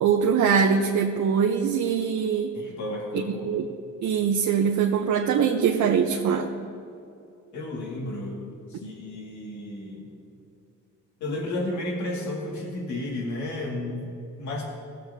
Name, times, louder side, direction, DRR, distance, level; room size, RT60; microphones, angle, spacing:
voice 1, 0.0-2.5 3.1-3.6 4.0-6.5, right 7 dB, 70° right, 2 dB, 0.8 m, -23 dB
voice 2, 2.5-3.7 7.5-8.4 8.7-10.1 11.2-14.7, left 1 dB, 70° left, -2 dB, 2.2 m, -32 dB
17.5 x 7.6 x 2.8 m, 2.6 s
cardioid pair, 90°, 30 cm